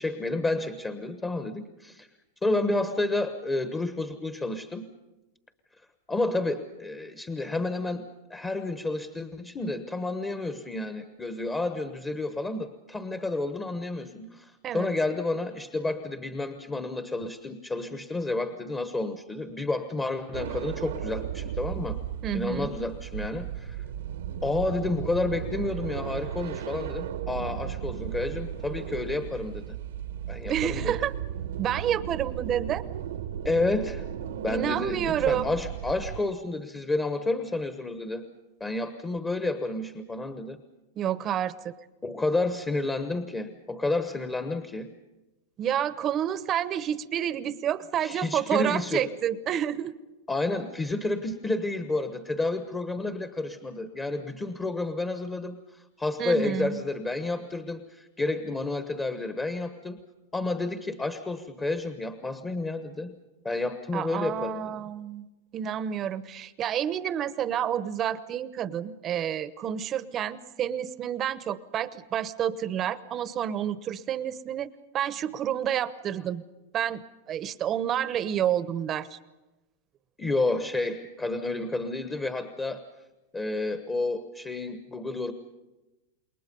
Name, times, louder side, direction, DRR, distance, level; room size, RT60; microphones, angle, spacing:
voice 1, 0.0-2.1 2.4-4.9 6.1-22.0 22.3-23.8 24.4-29.8 30.3-30.9 33.4-34.0 34.4-38.2 38.6-40.6 42.0-44.9 48.0-49.1 50.3-60.0 60.3-63.2 63.4-64.8 80.2-82.8 83.3-85.3, left 2 dB, 15° left, 9 dB, 1.1 m, -30 dB
sound 1, 20.3-36.2, right 10 dB, 80° right, 1.2 m, -35 dB
voice 2, 22.2-22.7 30.5-31.1 31.6-32.8 34.5-35.5 41.0-41.7 45.6-49.9 56.2-56.8 63.9-65.3 65.5-76.4 76.7-79.2, right 10 dB, 30° right, 15 dB, 0.9 m, -29 dB
28.5 x 22.0 x 5.4 m, 1.1 s
hypercardioid pair, 125°, 0 cm